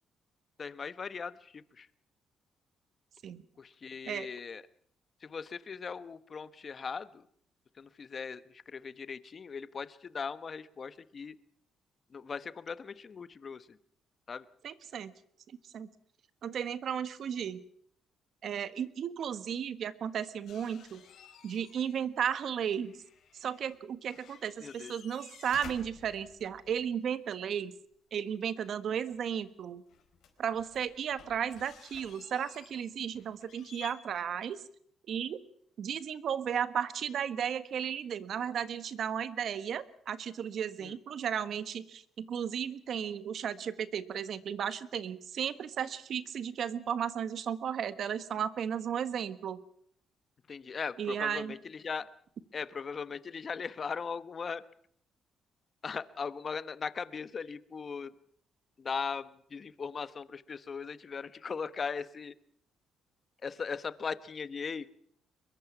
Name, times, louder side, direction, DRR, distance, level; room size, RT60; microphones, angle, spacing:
voice 1, 0.6-1.9 3.6-4.6 5.2-7.2 7.8-11.4 12.1-13.8 14.3-14.5 24.6-24.9 40.8-40.9 50.5-52.1 52.5-54.6 55.8-58.1 58.8-62.3 63.4-64.9, left 5 dB, 40° left, 14 dB, 1.0 m, -39 dB
voice 2, 14.6-15.1 15.6-15.9 16.4-17.6 18.4-21.0 21.4-22.9 23.3-27.7 28.1-29.8 30.4-34.6 35.1-35.4 35.8-49.6 51.0-51.5, right 8 dB, 65° right, 13 dB, 1.4 m, -34 dB
sound 1, 20.5-22.1 22.3-23.8 24.0-26.8 29.1-29.2 29.9-33.9, left 7 dB, 70° left, 4.4 m, -54 dB
23.0 x 22.0 x 6.0 m, 0.66 s
cardioid pair, 90°, 0 cm